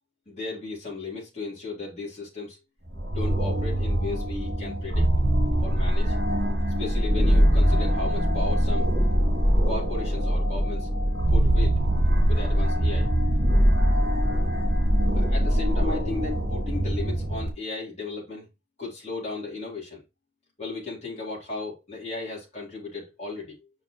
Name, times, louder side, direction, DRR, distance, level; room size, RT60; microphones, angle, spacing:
voice 1, 0.3-2.6 3.1-5.1 5.6-6.2 6.8-8.9 9.7-10.9 11.3-11.8 12.3-13.1 15.1-18.5 18.8-20.0 20.6-23.7, left 3 dB, 35° left, 3.8 m, -35 dB
sound 1, 2.9-17.5, equal, 65° right, 2.9 m, -23 dB
7.0 x 6.2 x 3.2 m
head